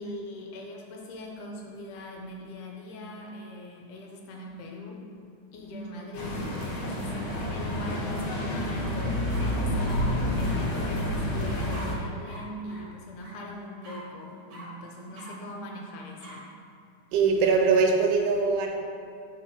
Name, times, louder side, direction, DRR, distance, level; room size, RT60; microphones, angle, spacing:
voice 1, 0.0-5.0 5.5-16.4, left 1 dB, 75° left, 0 dB, 2.4 m, -41 dB
sound 1, 6.1-11.9, left 1 dB, 60° left, 2.4 m, -29 dB
sound 2, 8.8-8.9 9.3-10.0 10.4-10.6 11.7-11.9 12.2-12.4 12.7-12.8 13.2-13.3 13.8-14.0 14.5-14.6 15.1-15.3 16.2-16.4, right 2 dB, 50° right, 2.2 m, -45 dB
voice 2, 17.1-18.8, right 4 dB, 85° right, 3 dB, 2.3 m, -22 dB
6.2 x 5.2 x 6.0 m, 2.5 s
omnidirectional pair, 3.7 m